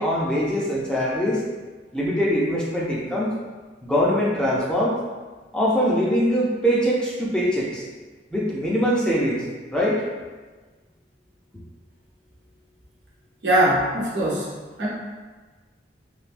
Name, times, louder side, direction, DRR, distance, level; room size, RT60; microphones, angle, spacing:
voice 1, 0.0-1.4 1.9-3.4 3.8-5.0 5.5-7.8 8.3-9.4 9.7-10.0, equal, 5° left, -6 dB, 0.4 m, -22 dB
voice 2, 13.4-14.5 14.8-14.9, right 1 dB, 85° right, -6 dB, 1.0 m, -21 dB
3.3 x 2.6 x 2.5 m, 1.3 s
head